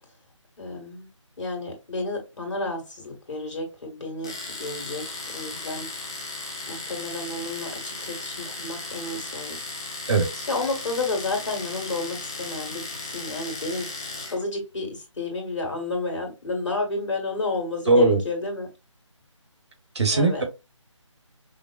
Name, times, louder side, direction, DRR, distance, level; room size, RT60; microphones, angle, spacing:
voice 1, 0.6-1.1 1.4-5.9 6.7-9.6 10.5-13.9 14.3-18.7 20.1-20.4, left 3 dB, 65° left, 2 dB, 1.9 m, -31 dB
Domestic sounds home sounds, 4.2-14.4, left 3 dB, 10° left, 0.4 m, -36 dB
voice 2, 10.1-10.4 17.9-18.2 19.9-20.4, right 3 dB, 60° right, 4 dB, 1.6 m, -20 dB
5.6 x 2.2 x 2.5 m, 0.26 s
figure-of-eight pair, 155°, 16 cm